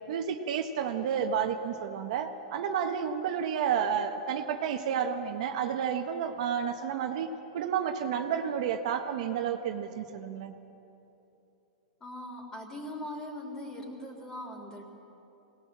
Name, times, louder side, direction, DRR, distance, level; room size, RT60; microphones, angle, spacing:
voice 1, 0.1-7.3 7.5-10.5, right 8 dB, 65° right, 5 dB, 1.4 m, -31 dB
voice 2, 12.0-14.9, left 1 dB, 15° left, 2 dB, 3.7 m, -40 dB
23.5 x 19.0 x 7.5 m, 2.9 s
hypercardioid pair, 135°, 4 cm